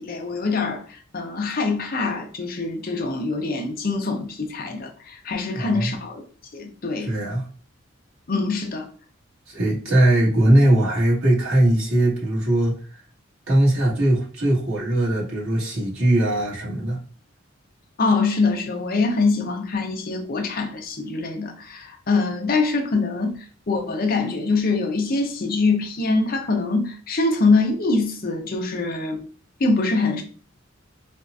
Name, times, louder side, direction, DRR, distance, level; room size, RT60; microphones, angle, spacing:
voice 1, 0.0-6.2 6.5-7.1 8.3-8.9 18.0-29.2 29.6-30.2, left 3 dB, 45° left, 0.6 m, -24 dB
voice 2, 5.5-5.9 7.0-7.5 9.5-12.7 13.5-17.0, right 1 dB, 85° right, 1.7 m, -20 dB
4.3 x 2.4 x 2.5 m
head